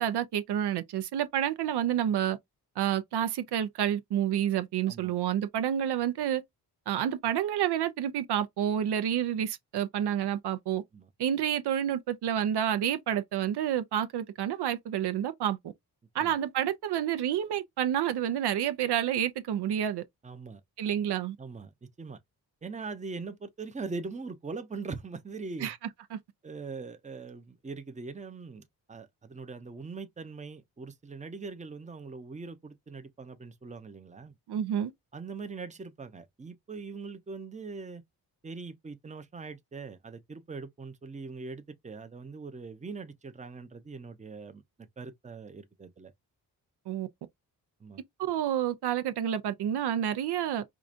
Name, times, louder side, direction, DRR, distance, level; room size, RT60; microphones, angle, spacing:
voice 1, 0.0-2.4 2.8-6.4 6.9-10.8 11.2-15.7 16.1-20.0 20.8-21.4 25.6-25.8 26.1-26.2 34.5-34.9 46.9-47.1 48.2-50.6, right 10 dB, 70° right, 0.6 m, -29 dB
voice 2, 20.2-20.6 21.4-22.2 22.6-25.7 26.4-34.3 35.1-38.0 38.4-46.1 47.8-48.0, right 4 dB, 20° right, 0.7 m, -41 dB
4.7 x 2.4 x 2.5 m
cardioid pair, 75°, 41 cm